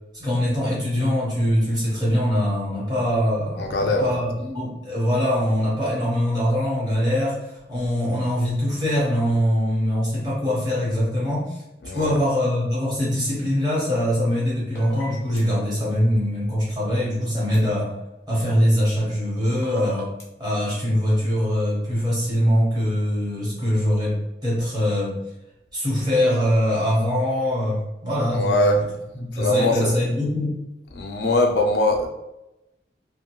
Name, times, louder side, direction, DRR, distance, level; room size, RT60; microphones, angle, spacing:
voice 1, 0.1-11.6 11.9-17.9 18.3-20.1 20.4-24.2 24.4-25.1 25.7-28.9 29.2-30.6, equal, 25° right, -6 dB, 1.1 m, -23 dB
voice 2, 3.6-4.1 11.8-12.2 28.3-28.8 29.3-29.9 31.0-32.1, left 1 dB, 70° left, 4 dB, 0.4 m, -21 dB
sound 1, 14.7-15.4 17.5-17.6 19.6-20.2, equal, 15° left, 0.5 m, -39 dB
2.5 x 2.2 x 2.9 m, 0.91 s
head